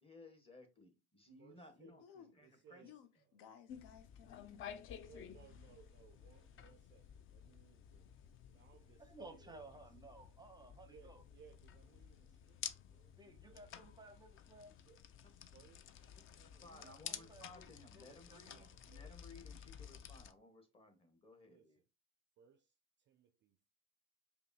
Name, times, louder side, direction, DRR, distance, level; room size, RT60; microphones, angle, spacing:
voice 1, 0.0-2.0 2.3-2.8 16.4-21.8, left 2 dB, 15° left, 1.2 m, -59 dB
voice 2, 1.4-3.2 5.0-9.6 10.8-13.8 14.9-15.0 15.5-16.0 16.4-17.4 18.2-19.1 21.4-21.8 22.4-23.7, right 9 dB, 30° right, 0.4 m, -66 dB
voice 3, 2.0-5.8, left 8 dB, 70° left, 0.7 m, -61 dB
sound 1, 3.7-20.3, left 9 dB, 35° left, 0.4 m, -53 dB
voice 4, 9.0-11.2 13.0-14.7 16.7-18.7, right 2 dB, 10° right, 0.7 m, -57 dB
5.0 x 2.3 x 2.7 m
hypercardioid pair, 80°, 37 cm